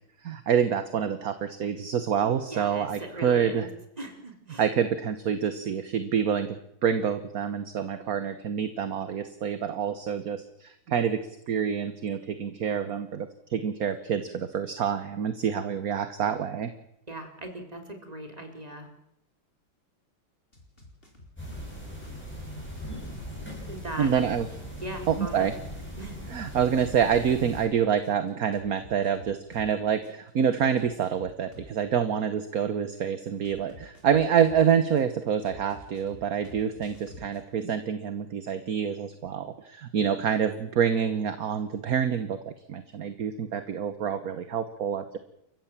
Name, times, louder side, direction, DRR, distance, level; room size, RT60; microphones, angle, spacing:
voice 1, 0.2-3.7 4.6-6.6 6.8-16.7 24.0-24.5 25.1-25.5 26.3-45.2, right 7 dB, 50° right, 11 dB, 1.4 m, -27 dB
voice 2, 2.5-3.7 4.0-4.6 17.1-18.9 23.7-24.1 24.8-25.5 26.0-26.2, right 1 dB, 15° right, 5 dB, 3.7 m, -39 dB
sound 1, 20.5-21.7 22.0-25.7 26.0-29.7 30.0-31.8 33.4-35.0 35.4-37.4, left 2 dB, 25° left, 4.6 m, -50 dB
sound 2, 21.4-27.6, equal, 5° left, 7.5 m, -40 dB
29.5 x 15.0 x 7.4 m, 0.77 s
omnidirectional pair, 2.3 m